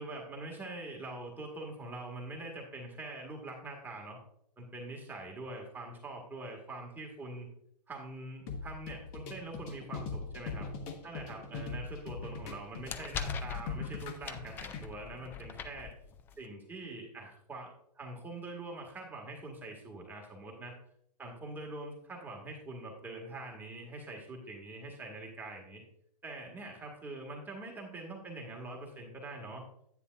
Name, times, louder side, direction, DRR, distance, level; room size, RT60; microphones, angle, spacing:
voice 1, 0.0-4.2 4.6-7.5 7.9-10.7 11.0-15.9 16.4-20.7 21.2-25.8 26.2-29.6, right 2 dB, 10° right, 0 dB, 1.9 m, -44 dB
sound 1, 8.5-14.9, left 4 dB, 30° left, 1.3 m, -41 dB
sound 2, 12.5-16.5, left 7 dB, 10° left, 0.3 m, -43 dB
9.8 x 9.2 x 2.5 m, 0.70 s
hypercardioid pair, 125°, 21 cm